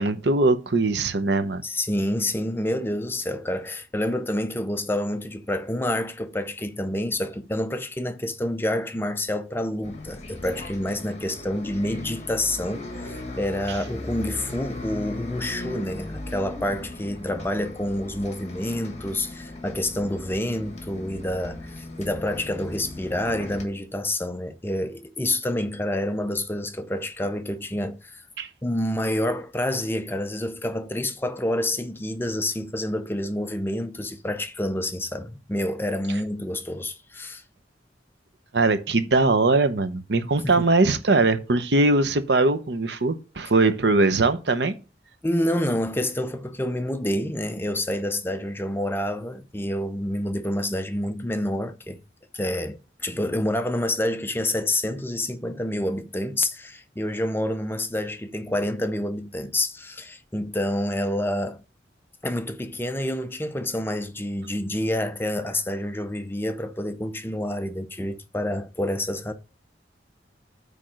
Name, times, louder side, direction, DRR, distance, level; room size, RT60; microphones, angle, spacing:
voice 1, 0.0-1.6 28.4-28.5 38.5-44.7, right 2 dB, 70° right, 0.9 m, -21 dB
voice 2, 1.6-28.2 28.6-37.4 40.4-40.7 45.2-52.0 52.3-61.6 62.2-69.3, left 1 dB, 10° left, 0.5 m, -28 dB
Bus, 9.8-23.6, left 2 dB, 40° left, 1.6 m, -38 dB
8.6 x 3.5 x 6.4 m
head